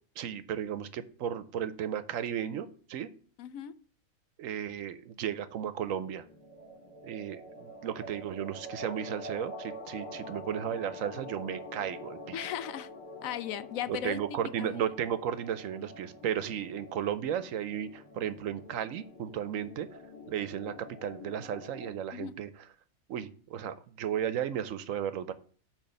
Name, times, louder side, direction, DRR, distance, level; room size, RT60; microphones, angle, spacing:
voice 1, 0.2-3.1 4.4-6.2 7.0-12.5 13.9-19.9 20.3-22.5 23.1-25.3, right 9 dB, 75° right, 1.0 m, -34 dB
voice 2, 3.4-3.7 12.3-12.9 13.2-14.2 14.6-14.7 22.1-22.3, left 10 dB, 80° left, 1.0 m, -36 dB
sound 1, 5.9-21.9, left 1 dB, 55° left, 2.3 m, -46 dB
8.7 x 3.2 x 6.6 m
omnidirectional pair, 1.4 m